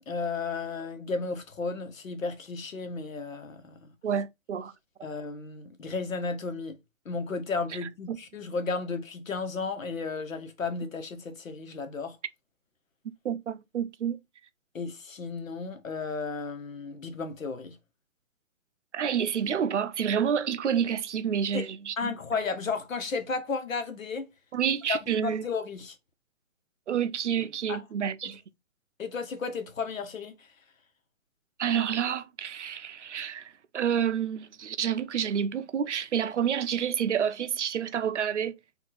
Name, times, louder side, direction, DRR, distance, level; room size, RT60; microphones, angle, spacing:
voice 1, 0.1-3.8 5.0-6.8 7.0-12.2 14.7-17.8 21.5-21.7 22.0-24.2 24.9-25.9 27.7-27.8 28.2-28.3 29.0-30.3, left 4 dB, 80° left, 1.4 m, -33 dB
voice 2, 4.0-4.7 8.1-8.2 13.2-14.2 18.9-22.1 24.5-25.4 26.9-28.4 31.6-38.6, right 8 dB, 60° right, 0.6 m, -29 dB
4.4 x 2.7 x 4.1 m
hypercardioid pair, 165°, 39 cm